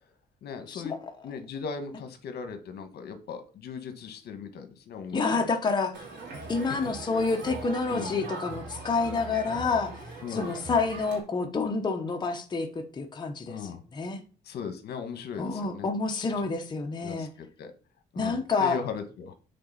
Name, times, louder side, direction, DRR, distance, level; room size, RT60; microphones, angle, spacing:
voice 1, 0.4-1.0 1.2-5.5 6.6-6.7 7.0-7.1 7.9-8.2 10.2-10.5 13.5-13.8 14.4-15.9 17.0-17.7 18.1-19.3, left 6 dB, 65° left, 8 dB, 1.3 m, -38 dB
voice 2, 5.1-6.0 6.5-9.9 10.3-14.2 15.4-17.3 18.2-18.8, left 4 dB, 25° left, 4 dB, 0.8 m, -28 dB
Crowd, 5.9-11.2, right 3 dB, 85° right, 2.6 m, -40 dB
7.6 x 3.8 x 5.6 m, 0.38 s
cardioid pair, 140°, 18 cm